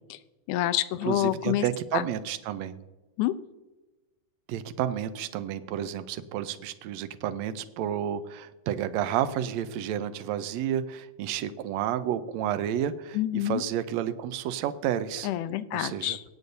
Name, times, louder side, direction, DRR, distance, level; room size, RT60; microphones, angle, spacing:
voice 1, 0.5-1.7 1.9-2.0 3.2-3.3 13.1-13.6 15.2-16.2, left 14 dB, 85° left, 14 dB, 2.1 m, -27 dB
voice 2, 1.1-2.8 4.5-15.3 15.7-16.2, right 10 dB, 75° right, 10 dB, 1.7 m, -31 dB
24.5 x 8.2 x 2.7 m, 1.1 s
omnidirectional pair, 3.6 m